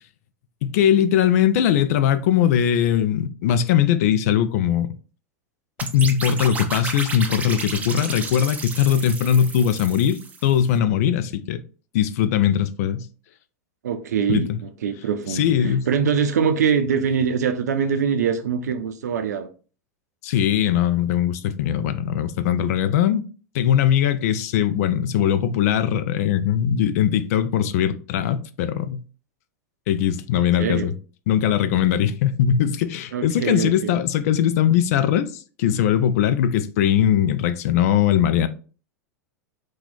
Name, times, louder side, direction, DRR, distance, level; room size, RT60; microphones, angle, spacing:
voice 1, 0.6-4.9 5.8-11.6 11.9-13.1 14.3-14.6 15.3-15.9 20.2-23.3 23.5-29.0 29.9-30.9 31.3-38.5, left 9 dB, 65° left, 0.4 m, -20 dB
sound 1, 5.8-10.6, right 4 dB, 15° right, 0.5 m, -32 dB
voice 2, 13.8-19.5 30.4-30.9 33.1-34.0, right 7 dB, 85° right, 0.5 m, -23 dB
3.0 x 2.3 x 3.9 m
hypercardioid pair, 105°, 9 cm